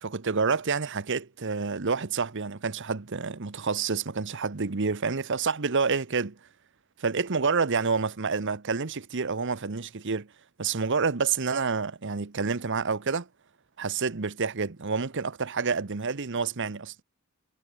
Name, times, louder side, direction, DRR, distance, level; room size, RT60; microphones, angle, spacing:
voice 1, 0.0-6.4 7.0-10.3 10.6-13.3 13.8-17.0, right 5 dB, 60° right, 1.0 m, -28 dB
head